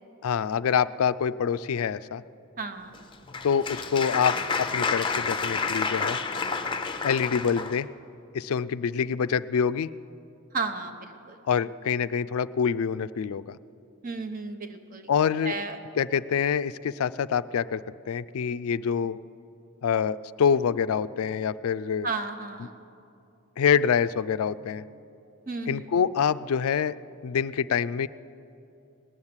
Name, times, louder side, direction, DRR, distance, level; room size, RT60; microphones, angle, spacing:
voice 1, 0.2-2.2 3.4-6.2 7.0-7.9 8.3-9.9 11.5-13.6 15.1-15.6 16.0-17.8 18.1-19.2 19.8-22.1 23.6-24.8 25.7-27.0 27.2-28.1, left 7 dB, 75° left, 15 dB, 0.4 m, -26 dB
voice 2, 2.6-3.0 10.5-11.4 14.0-15.1 15.4-15.8 22.0-22.8 25.5-25.9, right 3 dB, 40° right, 7 dB, 0.9 m, -33 dB
Applause, 2.9-7.8, left 4 dB, 20° left, 0.6 m, -29 dB
18.5 x 7.3 x 9.7 m, 2.6 s
head